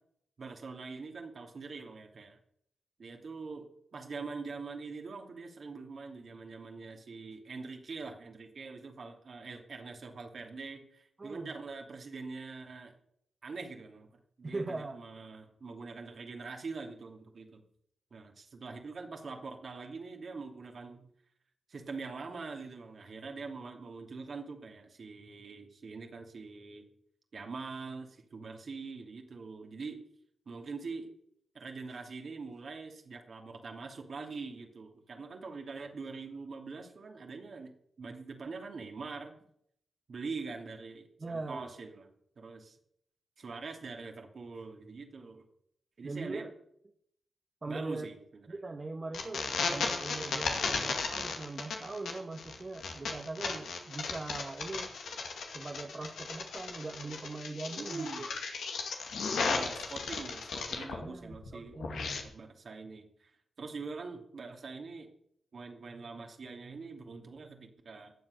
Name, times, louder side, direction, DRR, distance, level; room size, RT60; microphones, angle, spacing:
voice 1, 0.4-2.4 3.0-3.7 3.9-12.9 13.4-14.1 14.4-17.6 18.1-21.1 21.7-26.9 27.3-30.0 30.5-31.1 31.5-37.7 38.0-39.3 40.1-42.8 43.4-45.4 46.0-46.4 47.7-48.6 57.8-58.2 59.5-65.1 65.5-68.1, right 4 dB, 60° right, 3 dB, 2.7 m, -44 dB
voice 2, 11.2-11.5 14.4-15.0 41.2-41.7 46.0-46.5 47.6-48.1 48.5-54.9 55.5-58.3 61.0-62.2, right 3 dB, 40° right, 3 dB, 1.5 m, -41 dB
sound 1, 49.1-61.0 61.3-62.2, left 4 dB, 80° left, 2.3 m, -35 dB
19.0 x 7.5 x 6.6 m, 0.74 s
supercardioid pair, 40°, 0 cm